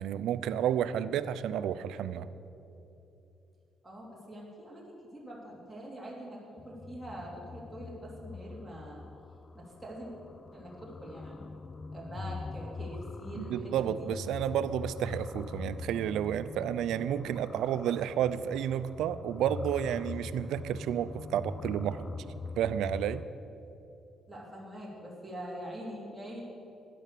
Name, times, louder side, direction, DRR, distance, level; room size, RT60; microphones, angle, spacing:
voice 1, 0.0-2.3 13.4-22.1 22.6-23.2, right 10 dB, 85° right, 14 dB, 0.5 m, -31 dB
voice 2, 3.8-9.0 9.5-10.1 10.5-11.4 11.9-14.1 24.3-26.4, equal, 5° right, -5 dB, 3.2 m, -44 dB
sound 1, 6.6-23.2, left 4 dB, 30° left, 0.3 m, -43 dB
12.5 x 10.0 x 6.8 m, 2.9 s
cardioid pair, 90°, 0 cm